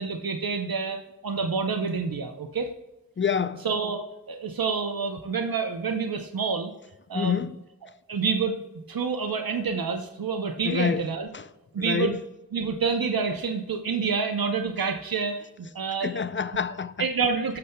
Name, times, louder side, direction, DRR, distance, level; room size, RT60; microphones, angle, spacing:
voice 1, 0.0-2.7 3.6-4.0 4.3-6.7 7.1-7.4 8.1-8.6 8.9-11.3 11.7-12.2 12.5-16.2 17.0-17.6, right 5 dB, 80° right, 0.7 m, -28 dB
voice 2, 3.2-3.7 7.1-7.6 10.6-11.1 11.3-11.4 11.8-12.2 16.0-17.1, left 6 dB, 35° left, 0.4 m, -27 dB
12.0 x 6.7 x 2.2 m
wide cardioid pair, 60°, 35 cm